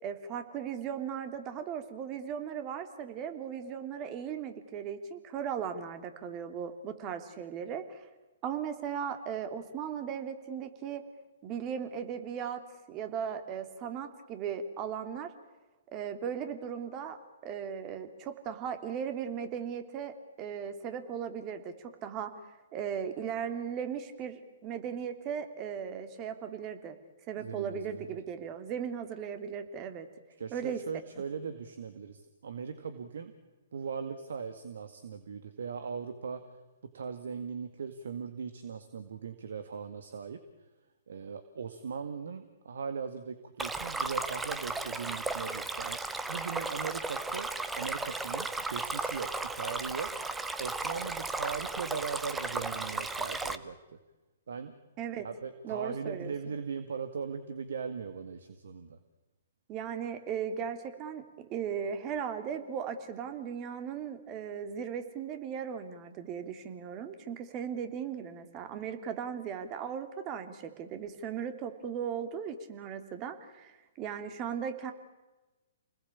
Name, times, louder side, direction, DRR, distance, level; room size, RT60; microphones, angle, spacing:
voice 1, 0.0-8.1 8.4-11.0 11.4-12.6 12.9-15.3 15.9-17.2 17.4-22.3 22.7-27.0 27.3-30.1 30.5-30.8 55.0-55.2 55.6-56.5 59.7-74.9, right 8 dB, 30° right, 8 dB, 3.0 m, -37 dB
voice 2, 27.4-28.2 30.4-33.3 33.7-36.4 36.9-40.4 41.1-46.0 46.3-47.5 47.7-49.3 49.5-50.1 50.6-53.8 54.5-54.8 55.1-59.0, right 6 dB, 70° right, 9 dB, 2.0 m, -39 dB
Stream, 43.6-53.6, right 3 dB, 10° right, 1.2 m, -35 dB
29.0 x 20.5 x 8.6 m, 1.1 s
figure-of-eight pair, 125°, 0 cm